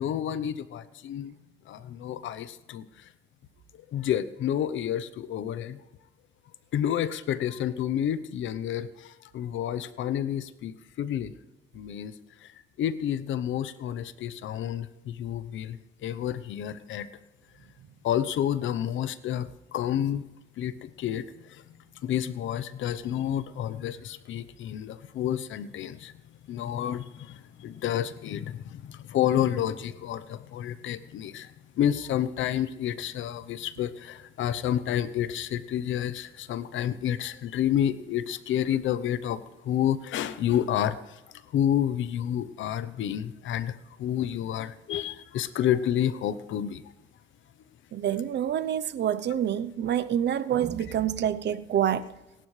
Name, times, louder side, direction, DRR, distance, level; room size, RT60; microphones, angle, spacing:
voice 1, 0.0-1.3 1.7-2.9 3.7-5.8 6.7-11.3 11.7-12.1 12.4-12.5 12.8-17.1 18.0-20.2 20.6-21.3 22.0-26.1 26.5-41.0 41.5-43.7 44.0-46.8, left 10 dB, 75° left, 14 dB, 0.9 m, -29 dB
voice 2, 47.9-52.1, right 10 dB, 60° right, 15 dB, 0.8 m, -27 dB
26.0 x 12.0 x 3.3 m, 0.98 s
cardioid pair, 90°, 20 cm